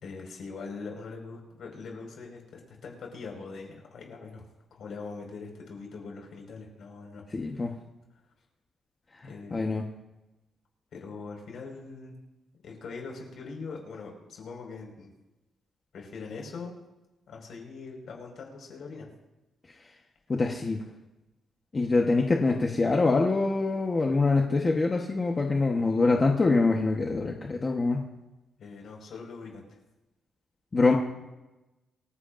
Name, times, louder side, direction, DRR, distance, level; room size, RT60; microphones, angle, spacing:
voice 1, 0.0-7.2 9.2-9.8 10.9-12.2 12.6-15.1 15.9-16.8 17.3-19.1 28.6-29.8, left 4 dB, 60° left, 1 dB, 5.2 m, -42 dB
voice 2, 7.3-7.7 9.5-9.8 20.3-20.8 21.7-28.1 30.7-31.0, left 3 dB, 25° left, 1 dB, 1.2 m, -24 dB
27.0 x 15.5 x 2.6 m, 1.0 s
cardioid pair, 150°, 0 cm